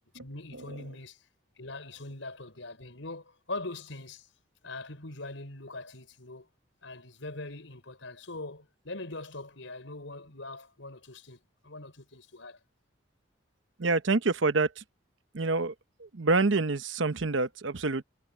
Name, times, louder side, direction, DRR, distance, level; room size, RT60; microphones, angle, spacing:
voice 1, 0.2-1.2 1.6-4.3 4.6-6.5 6.8-12.6, left 2 dB, 85° left, 5.1 m, -42 dB
voice 2, 13.8-14.8 15.3-15.7 16.0-18.0, right 3 dB, 80° right, 1.0 m, -27 dB
head